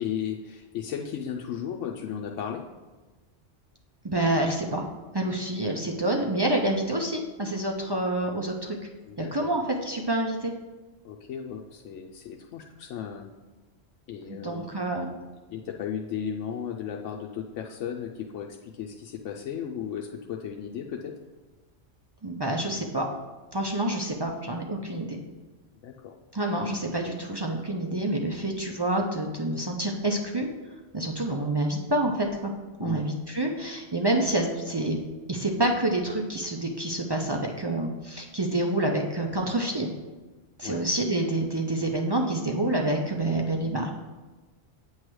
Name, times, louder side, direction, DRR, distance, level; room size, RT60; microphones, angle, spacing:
voice 1, 0.0-2.6 9.0-9.6 11.0-13.3 14.1-14.7 15.5-21.2 25.8-26.1 32.8-33.0 40.6-40.8, left 8 dB, 80° left, 0 dB, 0.9 m, -35 dB
voice 2, 4.0-4.9 5.1-8.8 9.2-10.5 14.3-15.1 22.2-23.1 23.5-25.2 26.3-30.5 30.9-32.5 32.8-35.0 35.3-39.9 40.6-43.9, right 1 dB, 40° right, 1 dB, 0.3 m, -27 dB
8.6 x 3.2 x 6.1 m, 1.2 s
omnidirectional pair, 1.3 m